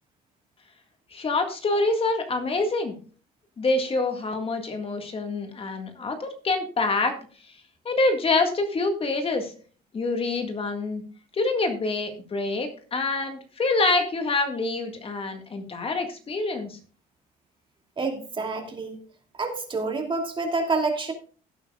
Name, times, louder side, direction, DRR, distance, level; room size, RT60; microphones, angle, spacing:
voice 1, 1.1-3.0 3.6-7.2 7.8-9.5 9.9-11.0 11.3-16.8, left 3 dB, 35° left, 5 dB, 1.9 m, -26 dB
voice 2, 18.0-19.0 19.4-21.1, right 3 dB, 30° right, 3 dB, 2.6 m, -28 dB
17.0 x 8.8 x 2.4 m, 0.38 s
cardioid pair, 110°, 17 cm